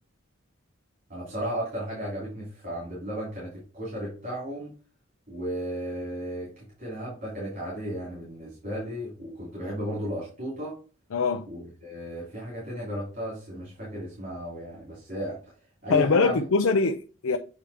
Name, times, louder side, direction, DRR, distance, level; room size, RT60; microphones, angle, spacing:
voice 1, 1.1-4.7 5.3-10.8 11.5-15.4 15.8-16.4, equal, 45° right, 2.9 m, -34 dB
voice 2, 11.1-11.5 15.9-17.4, left 4 dB, 85° left, 0.5 m, -23 dB
8.3 x 3.6 x 3.4 m
head